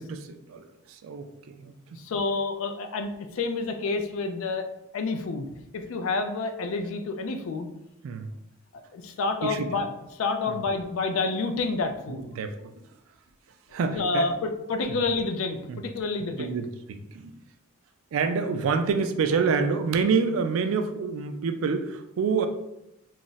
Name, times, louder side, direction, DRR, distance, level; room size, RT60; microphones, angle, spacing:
voice 1, 0.0-2.0 8.0-8.3 9.4-9.7 10.5-10.6 12.1-12.5 13.7-14.3 14.9-15.0 15.7-15.8 16.4-17.3 18.1-22.5, right 5 dB, 70° right, 8 dB, 0.3 m, -27 dB
voice 2, 1.9-4.7 4.9-5.5 5.7-7.7 8.9-9.9 10.1-12.3 13.9-16.6, left 3 dB, 70° left, 7 dB, 0.4 m, -29 dB
2.4 x 2.0 x 3.8 m, 0.87 s
head